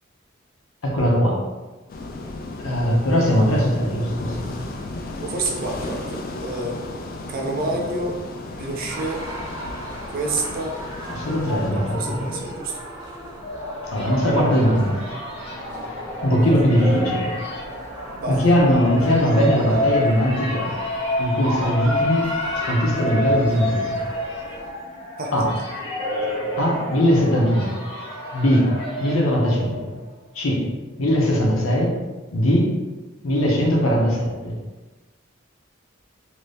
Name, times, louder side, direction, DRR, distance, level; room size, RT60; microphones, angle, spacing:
voice 1, 0.8-1.4 2.6-4.5 11.1-12.4 13.9-15.0 15.5-15.6 16.2-17.3 18.3-20.7 21.2-22.3 22.7-24.0 25.3-25.5 26.6-27.8 28.3-28.7 29.0-29.9 30.3-30.7 31.0-32.0 32.3-32.8 33.2-34.5, equal, 90° left, -1 dB, 0.8 m, -20 dB
sound 1, 1.9-11.7, left 2 dB, 45° left, 0.3 m, -34 dB
voice 2, 5.2-6.8 7.3-8.2 8.6-9.3 10.1-10.8 11.7-12.8 18.2-18.4 25.2-25.3, right 2 dB, 45° right, 0 dB, 0.4 m, -28 dB
sound 2, 8.9-24.7, equal, 25° right, 0.9 m, -36 dB
sound 3, 13.1-30.1, left 1 dB, 25° left, 1.0 m, -29 dB
2.9 x 2.7 x 3.3 m, 1.2 s
head